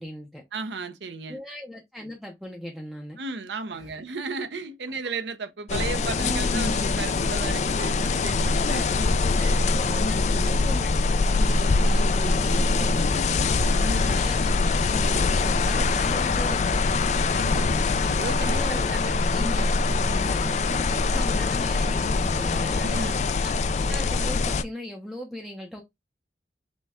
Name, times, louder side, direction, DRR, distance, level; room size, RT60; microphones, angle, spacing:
voice 1, 0.0-0.4 1.3-3.2 3.7-3.9 6.1-6.7 9.3-10.9 11.3-13.5 14.0-14.5 14.9-17.1 18.4-22.9 23.4-23.6 23.8-25.8, equal, ahead, 0.6 m, -38 dB
voice 2, 0.5-1.4 3.2-9.6 10.3-10.5 13.7-14.2 17.2-19.2 20.0-20.4 22.8-23.2, right 3 dB, 85° right, 0.7 m, -35 dB
sound 1, 5.7-24.6, left 3 dB, 40° left, 0.3 m, -23 dB
5.2 x 2.2 x 3.5 m
head